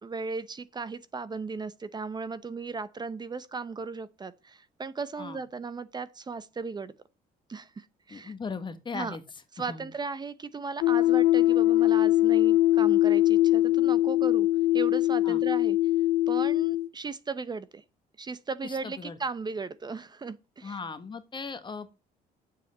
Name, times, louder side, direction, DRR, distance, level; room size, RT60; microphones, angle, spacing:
voice 1, 0.0-6.9 7.5-8.3 8.9-9.2 9.5-14.5 14.7-15.8 16.3-17.8 18.2-20.8, right 4 dB, 25° right, 0.9 m, -36 dB
voice 2, 8.1-9.2 9.7-9.9 15.2-15.4 18.6-19.2 20.6-21.9, left 4 dB, 30° left, 1.5 m, -38 dB
sound 1, 10.8-16.9, left 15 dB, 70° left, 0.8 m, -22 dB
9.1 x 7.7 x 8.1 m
cardioid pair, 110°, 17 cm